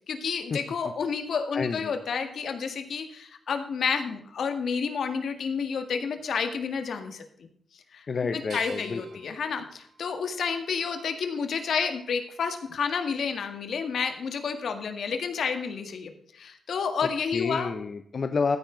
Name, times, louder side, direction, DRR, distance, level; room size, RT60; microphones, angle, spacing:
voice 1, 0.1-7.5 7.9-8.1 8.5-17.7, left 6 dB, 70° left, 7 dB, 1.8 m, -30 dB
voice 2, 1.5-1.9 8.1-9.0 17.0-18.6, left 5 dB, 45° left, 8 dB, 0.7 m, -29 dB
sound 1, 8.5-11.4 12.0-12.8, right 4 dB, 85° right, 3.5 m, -51 dB
15.0 x 9.6 x 3.9 m, 0.67 s
wide cardioid pair, 155°, 0 cm